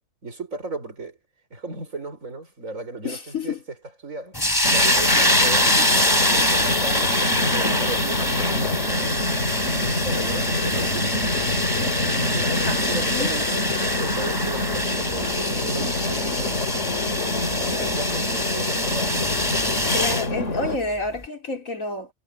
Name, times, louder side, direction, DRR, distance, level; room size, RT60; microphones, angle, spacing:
voice 1, 0.2-1.2 1.5-3.6 4.0-4.4 4.7-9.3 9.7-11.6 12.1-16.6 17.2-19.3, right 3 dB, 85° right, 5.4 m, -36 dB
voice 2, 3.0-3.6 5.2-5.3 12.7-13.3 19.9-22.1, left 3 dB, 90° left, 3.8 m, -29 dB
sound 1, 4.3-20.3, left 1 dB, 15° left, 3.9 m, -24 dB
sound 2, 4.6-20.8, left 2 dB, 65° left, 2.6 m, -27 dB
omnidirectional pair, 1.4 m